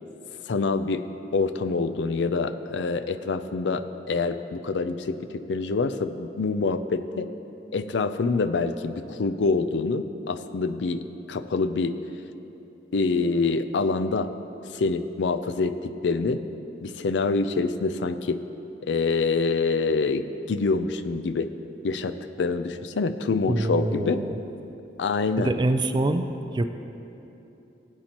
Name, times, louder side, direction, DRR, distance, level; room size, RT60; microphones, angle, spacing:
voice 1, 0.5-1.0 1.3-7.3 7.7-11.0 11.3-12.0 12.9-14.3 14.7-16.4 16.8-18.4 18.8-21.5 21.8-24.2 25.0-25.5, left 4 dB, 75° left, 11 dB, 0.4 m, -26 dB
voice 2, 23.5-24.4 25.4-26.3 26.5-26.7, right 2 dB, 25° right, 9 dB, 0.4 m, -25 dB
16.5 x 8.8 x 3.0 m, 2.9 s
head